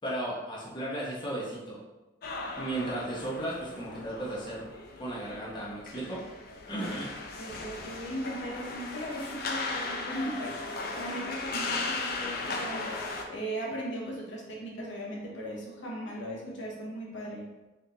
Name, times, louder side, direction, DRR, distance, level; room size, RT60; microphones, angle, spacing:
voice 1, 0.0-1.8 2.6-6.3 6.7-7.2, right 1 dB, 25° left, -6 dB, 0.8 m, -35 dB
sound 1, 2.2-13.2, left 3 dB, 55° left, 0.4 m, -37 dB
voice 2, 7.4-17.5, right 1 dB, 80° left, -3 dB, 0.8 m, -38 dB
3.6 x 2.5 x 2.8 m, 1.1 s
head